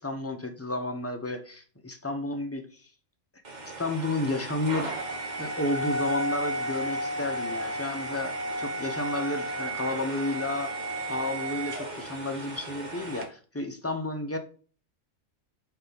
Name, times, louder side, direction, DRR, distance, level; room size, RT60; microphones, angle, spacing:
voice 1, 0.0-2.7 3.6-4.9 5.4-10.8 11.1-14.4, left 2 dB, 15° left, 4 dB, 0.7 m, -32 dB
sound 1, 3.4-13.2, right 1 dB, 35° right, 1.2 m, -33 dB
4.7 x 4.4 x 5.3 m, 0.40 s
omnidirectional pair, 1.5 m